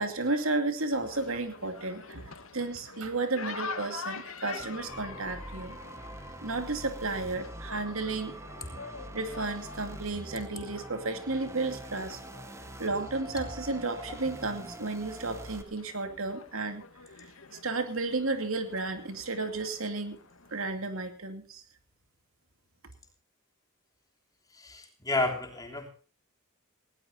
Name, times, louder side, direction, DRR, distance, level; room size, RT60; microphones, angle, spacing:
voice 1, 0.0-2.2 2.5-6.0 6.4-8.4 9.1-12.2 12.8-16.8 17.6-20.2 20.5-21.6, right 3 dB, 75° right, 7 dB, 2.6 m, -33 dB
sound 1, 0.9-20.7, left 5 dB, 75° left, 2.0 m, -46 dB
sound 2, 4.6-15.6, right 1 dB, 15° right, 1.3 m, -44 dB
voice 2, 24.5-25.9, left 2 dB, 20° left, 2 dB, 3.3 m, -31 dB
19.0 x 17.5 x 2.8 m, 0.38 s
head